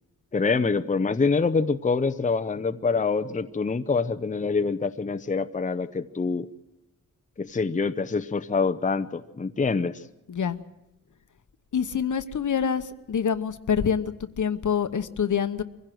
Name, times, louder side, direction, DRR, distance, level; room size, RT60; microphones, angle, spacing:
voice 1, 0.3-6.5 7.4-10.0, left 4 dB, 25° left, 10 dB, 0.6 m, -25 dB
voice 2, 10.3-10.6 11.7-15.6, left 7 dB, 65° left, 11 dB, 1.1 m, -26 dB
23.5 x 16.0 x 7.7 m, 0.99 s
wide cardioid pair, 115°, 33 cm